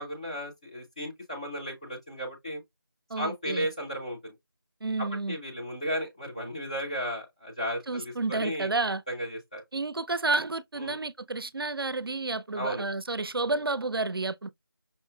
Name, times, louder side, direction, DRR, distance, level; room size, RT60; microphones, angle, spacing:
voice 1, 0.0-2.6 3.2-4.3 5.3-8.7 9.1-9.6 10.8-11.0 12.5-12.8, equal, 15° left, 0.7 m, -34 dB
voice 2, 3.1-3.7 4.8-5.4 7.9-9.0 9.7-14.5, right 3 dB, 90° right, 0.4 m, -30 dB
5.3 x 2.2 x 2.2 m
figure-of-eight pair, 170°, 12 cm